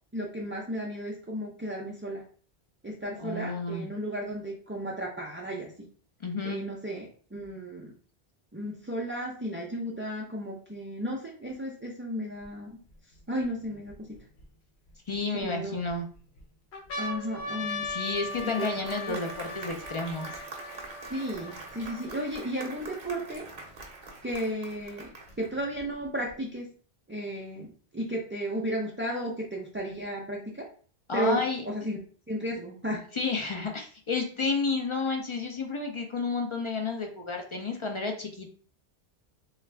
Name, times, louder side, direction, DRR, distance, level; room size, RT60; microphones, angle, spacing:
voice 1, 0.1-2.2 2.8-5.7 6.4-7.9 8.5-12.8 13.3-14.2 15.4-15.9 17.0-17.9 18.4-18.7 19.1-19.2 21.1-23.5 24.2-26.7 27.1-30.7 31.1-32.0 32.3-33.0, equal, 20° right, -3 dB, 0.4 m, -34 dB
voice 2, 3.2-3.9 6.2-6.6 15.1-16.1 17.8-20.3 31.1-31.6 33.1-38.5, left 4 dB, 40° left, 2 dB, 0.4 m, -31 dB
sound 1, 12.4-12.5 13.2-14.4 15.1-15.9 16.4-16.5 16.7-22.4 23.1-23.2 23.3-24.3 25.3-26.3, left 2 dB, 85° left, 0.9 m, -39 dB
Applause, 17.7-25.6, right 3 dB, 50° right, 0.8 m, -45 dB
3.3 x 2.4 x 3.2 m, 0.43 s
omnidirectional pair, 1.1 m